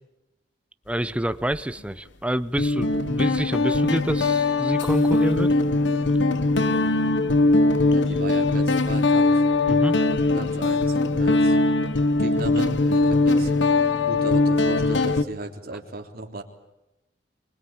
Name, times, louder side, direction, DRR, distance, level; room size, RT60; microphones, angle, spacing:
voice 1, 0.9-5.6 9.7-10.0, equal, 5° right, 13 dB, 0.8 m, -27 dB
Guitar, 1.3-1.6 2.6-15.2, left 2 dB, 80° left, 1.3 m, -21 dB
voice 2, 7.9-9.5 9.8-11.6 12.2-13.5 14.0-16.4, right 2 dB, 55° right, 2 dB, 3.5 m, -36 dB
24.5 x 21.5 x 8.8 m, 0.92 s
head